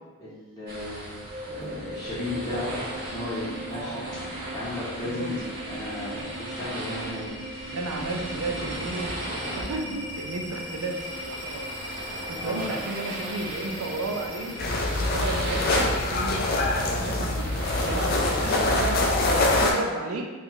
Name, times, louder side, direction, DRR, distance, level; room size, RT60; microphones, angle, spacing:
voice 1, 0.2-1.2 1.5-2.7 3.1-5.4 5.7-7.8 12.3-12.7, left 2 dB, 15° left, -10 dB, 0.9 m, -35 dB
sound 1, 0.7-19.4, right 1 dB, 40° right, 0.9 m, -38 dB
sound 2, 0.9-14.9, equal, 10° right, 0.5 m, -39 dB
voice 2, 3.7-4.1 5.1-5.3 7.7-11.7 12.3-16.4 16.9-17.5 17.8-20.2, right 3 dB, 70° right, 2 dB, 0.4 m, -33 dB
sound 3, 14.6-19.7, left 2 dB, 40° left, 0.4 m, -24 dB
4.0 x 2.3 x 3.0 m, 1.3 s
head